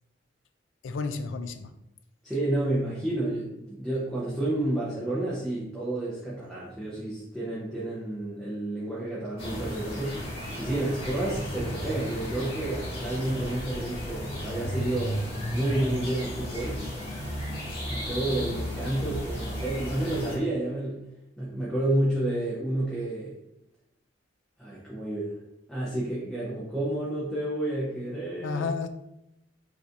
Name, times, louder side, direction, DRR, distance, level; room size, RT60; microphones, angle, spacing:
voice 1, 0.8-1.7 28.4-28.9, left 4 dB, 80° left, 9 dB, 0.4 m, -31 dB
voice 2, 2.2-10.2 10.6-15.1 15.5-16.8 17.9-21.0 21.4-23.3 24.6-25.4 25.7-28.7, right 1 dB, ahead, -8 dB, 0.8 m, -30 dB
sound 1, 9.4-20.4, equal, 30° left, 1.5 m, -34 dB
5.0 x 3.2 x 2.6 m, 0.85 s
head